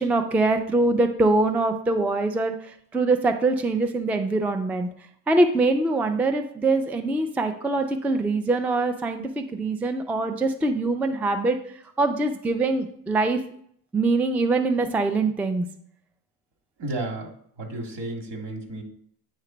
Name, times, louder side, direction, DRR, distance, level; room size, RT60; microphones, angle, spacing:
voice 1, 0.0-2.5 2.9-4.9 5.3-11.6 12.0-13.4 13.9-15.7, right 2 dB, 5° right, 6 dB, 0.3 m, -23 dB
voice 2, 16.8-17.3 17.6-18.8, right 2 dB, 70° right, 2 dB, 2.0 m, -32 dB
9.1 x 3.2 x 4.9 m, 0.64 s
cardioid pair, 130°, 42 cm